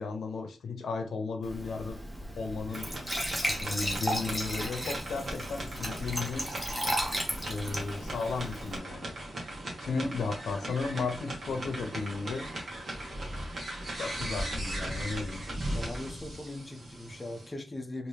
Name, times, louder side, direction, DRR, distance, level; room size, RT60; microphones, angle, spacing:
voice 1, 0.0-2.0 2.4-2.9 3.5-6.5 7.5-9.1 9.8-12.4 14.0-15.4, left 4 dB, 85° left, 0.7 m, -34 dB
Glass / Trickle dribble / Fill (with liquid), 1.4-8.8, equal, 5° right, 0.8 m, -35 dB
sound 1, 2.7-17.5, right 1 dB, 45° right, 1.3 m, -38 dB
voice 2, 15.7-18.1, left 1 dB, 20° left, 0.4 m, -40 dB
3.5 x 2.6 x 3.3 m
wide cardioid pair, 175°, 0 cm